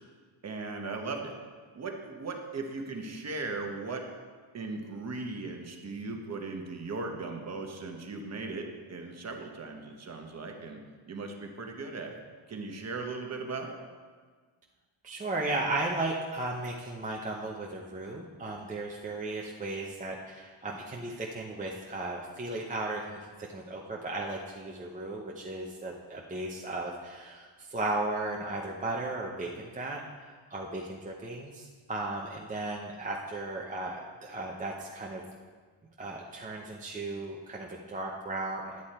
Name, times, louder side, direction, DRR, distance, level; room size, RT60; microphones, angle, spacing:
voice 1, 0.4-1.3 1.7-4.0 4.5-10.8 11.1-12.2 12.5-13.8, right 3 dB, 35° right, 3 dB, 1.1 m, -38 dB
voice 2, 15.0-35.2 36.0-38.8, right 2 dB, 15° right, -2 dB, 0.7 m, -35 dB
11.0 x 8.6 x 4.3 m, 1.5 s
wide cardioid pair, 170°, 47 cm